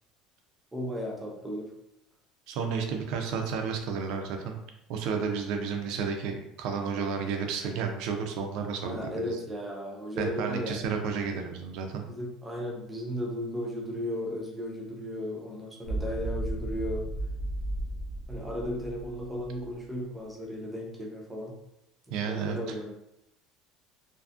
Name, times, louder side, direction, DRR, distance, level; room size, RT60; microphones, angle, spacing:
voice 1, 0.7-1.7 8.8-10.8 12.1-17.1 18.3-21.6 22.2-22.9, equal, 10° right, -2 dB, 0.5 m, -35 dB
voice 2, 2.5-4.6 4.9-9.4 10.2-12.0 22.1-22.6, right 6 dB, 65° right, 4 dB, 0.4 m, -32 dB
sound 1, 15.8-19.8, right 2 dB, 50° left, 0.8 m, -34 dB
2.5 x 2.4 x 2.4 m, 0.81 s
cardioid pair, 155°, 0 cm